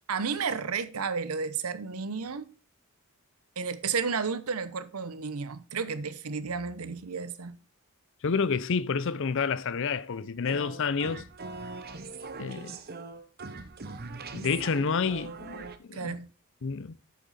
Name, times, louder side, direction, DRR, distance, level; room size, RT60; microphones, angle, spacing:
voice 1, 0.1-2.5 3.6-7.6 15.9-16.3, right 5 dB, 80° right, 0.9 m, -32 dB
voice 2, 8.2-11.2 12.4-12.8 14.3-16.1 16.6-17.0, left 5 dB, 60° left, 0.5 m, -29 dB
sound 1, 10.5-15.8, right 3 dB, 45° right, 0.9 m, -41 dB
8.2 x 8.0 x 4.2 m
head